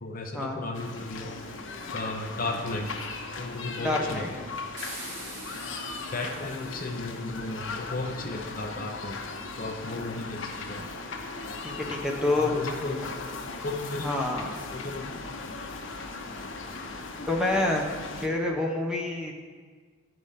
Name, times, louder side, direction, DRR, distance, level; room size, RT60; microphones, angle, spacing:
voice 1, 0.0-1.3 1.9-3.0 3.4-4.2 6.1-9.2 9.6-10.9 12.3-13.1 13.6-14.1 14.7-15.2, left 2 dB, 45° left, 3 dB, 0.7 m, -34 dB
sound 1, 0.7-18.3, left 3 dB, 70° left, 0.9 m, -38 dB
voice 2, 3.7-4.3 11.6-12.5 12.9-13.1 14.0-14.5 17.3-17.8 18.1-19.3, left 2 dB, 5° right, 0 dB, 0.9 m, -27 dB
sound 2, 4.8-7.2, right 2 dB, 60° right, 3.1 m, -43 dB
10.5 x 5.1 x 5.7 m, 1.6 s
head